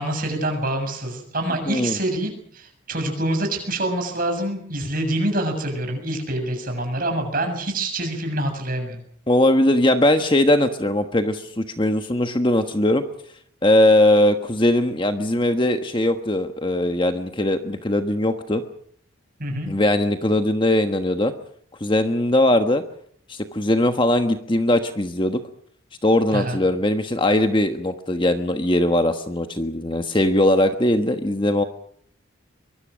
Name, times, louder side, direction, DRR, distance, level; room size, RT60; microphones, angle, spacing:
voice 1, 0.0-9.0 19.4-19.7 26.3-26.6, right 1 dB, 40° right, 5 dB, 7.2 m, -26 dB
voice 2, 1.7-2.0 9.3-13.0 13.6-18.6 19.6-21.3 21.8-22.8 23.3-25.4 26.0-31.6, left 1 dB, 25° left, 7 dB, 1.3 m, -20 dB
24.0 x 23.5 x 6.4 m, 0.63 s
head